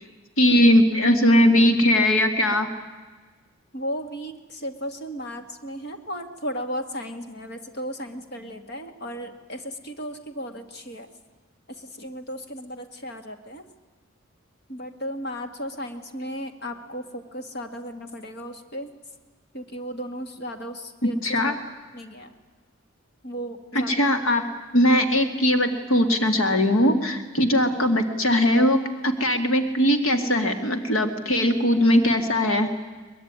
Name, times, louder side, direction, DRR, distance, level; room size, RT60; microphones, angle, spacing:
voice 1, 0.4-2.7 21.0-21.5 23.9-24.4 24.7-32.7, left 1 dB, 75° left, 7 dB, 2.3 m, -20 dB
voice 2, 3.7-11.1 11.7-13.6 14.7-18.9 19.5-21.2 21.9-22.3 23.2-24.1, equal, 50° left, 7 dB, 2.2 m, -35 dB
22.5 x 21.0 x 9.7 m, 1.3 s
head